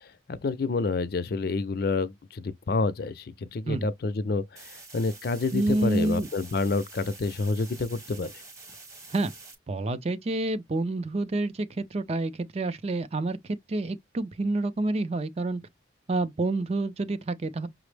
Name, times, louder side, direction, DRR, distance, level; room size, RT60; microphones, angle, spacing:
voice 1, 0.3-8.3, left 3 dB, 55° left, 0.5 m, -28 dB
sound 1, 4.6-9.6, right 3 dB, 20° right, 0.9 m, -47 dB
voice 2, 5.5-6.3 9.1-9.3 9.7-15.6 16.1-17.7, right 2 dB, 35° right, 0.4 m, -28 dB
5.8 x 2.0 x 3.2 m
head